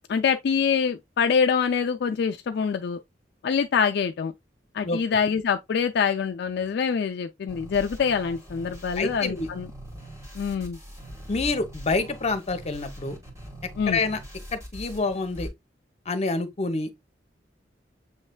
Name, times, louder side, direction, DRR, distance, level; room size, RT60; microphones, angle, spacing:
voice 1, 0.1-3.0 3.4-4.3 4.7-9.7 10.3-10.8 13.8-14.0, left 6 dB, 65° left, 0.3 m, -25 dB
sound 1, 7.5-15.5, equal, 15° right, 1.6 m, -42 dB
voice 2, 9.0-9.5 11.3-13.2 13.9-14.2 14.5-15.5 16.1-16.9, left 3 dB, 35° left, 0.7 m, -27 dB
7.0 x 3.2 x 2.2 m
head